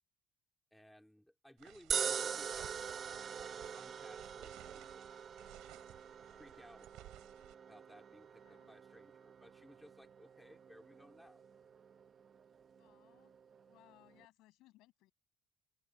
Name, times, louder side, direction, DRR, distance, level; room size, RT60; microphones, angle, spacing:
voice 1, 0.7-5.1 6.4-6.9 7.7-11.4, equal, ahead, 2.2 m, -61 dB
sound 1, 1.6-7.5, right 17 dB, 85° right, 6.5 m, -58 dB
sound 2, 1.9-14.2, right 7 dB, 35° right, 0.8 m, -44 dB
voice 2, 8.4-8.7 12.7-15.1, left 18 dB, 85° left, 7.6 m, -66 dB
open air
cardioid pair, 165°, 0 cm